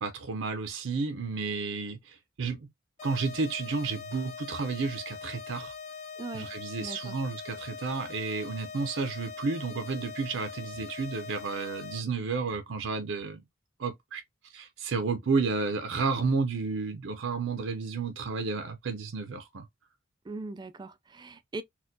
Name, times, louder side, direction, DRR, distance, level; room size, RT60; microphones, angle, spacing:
voice 1, 0.0-2.7 3.0-5.7 6.3-13.4 13.8-14.2 14.5-19.7, right 4 dB, 70° right, 0.6 m, -31 dB
sound 1, 3.0-12.0, left 6 dB, 40° left, 1.2 m, -42 dB
voice 2, 6.2-6.5 6.8-7.2 20.2-21.6, right 3 dB, 20° right, 0.3 m, -40 dB
4.2 x 2.3 x 2.6 m
head